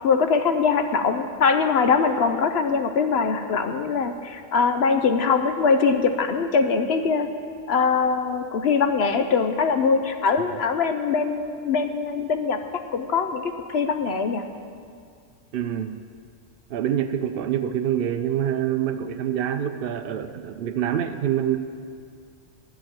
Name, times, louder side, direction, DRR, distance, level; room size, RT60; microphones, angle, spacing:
voice 1, 0.0-7.3 7.7-12.6 12.9-14.4, left 5 dB, 60° left, 7 dB, 0.8 m, -22 dB
voice 2, 15.5-16.0 16.7-21.6, right 10 dB, 65° right, 8 dB, 0.6 m, -26 dB
11.5 x 6.9 x 9.0 m, 2.2 s
omnidirectional pair, 1.3 m